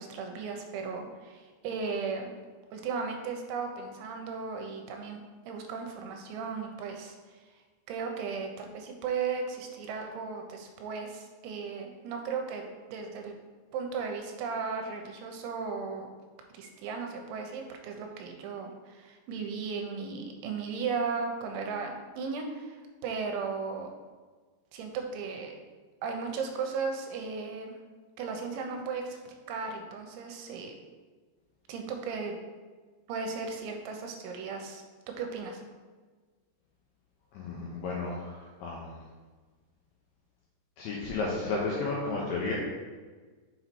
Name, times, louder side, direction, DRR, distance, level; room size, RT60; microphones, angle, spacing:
voice 1, 0.0-2.3 2.7-5.2 5.5-7.4 7.9-12.6 12.9-13.3 13.7-16.1 16.5-23.9 24.7-25.6 26.0-27.8 28.2-30.8 31.7-32.3 33.1-34.8 35.2-35.6, right 5 dB, 85° right, 3 dB, 3.0 m, -36 dB
voice 2, 37.3-39.0 40.8-42.5, left 3 dB, 85° left, -3 dB, 2.2 m, -33 dB
6.9 x 4.0 x 4.4 m, 1.4 s
omnidirectional pair, 5.3 m